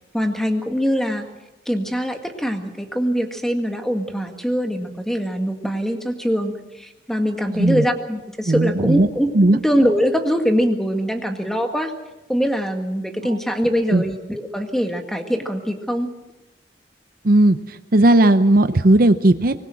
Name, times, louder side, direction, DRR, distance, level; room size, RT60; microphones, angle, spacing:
voice 1, 0.1-1.2 1.7-11.9 12.3-16.1, equal, ahead, 4 dB, 1.9 m, -23 dB
voice 2, 7.5-7.8 8.5-9.1 9.3-9.6 13.9-14.0 17.2-19.5, right 1 dB, 55° right, 10 dB, 0.8 m, -16 dB
24.0 x 20.0 x 6.3 m, 1.0 s
head